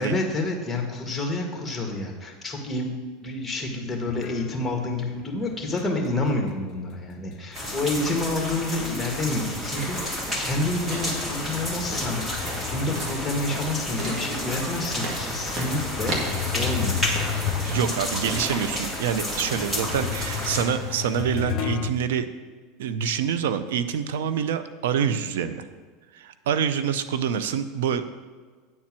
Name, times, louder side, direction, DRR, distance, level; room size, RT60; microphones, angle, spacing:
voice 1, 0.0-2.9 3.2-17.1 19.4-19.5, left 2 dB, 10° left, 1 dB, 1.9 m, -29 dB
sound 1, 4.1-9.1 9.4-14.0 14.6-14.7 15.5-21.9, left 9 dB, 50° left, 0.5 m, -34 dB
sound 2, 7.5-20.6, left 1 dB, 15° right, 2.4 m, -32 dB
sound 3, 9.6-21.5, right 1 dB, 45° right, 1.9 m, -35 dB
voice 2, 17.6-22.3 22.8-25.7 26.1-28.1, right 8 dB, 85° right, 11 dB, 0.6 m, -26 dB
9.4 x 4.5 x 7.5 m, 1.5 s
supercardioid pair, 115°, 0 cm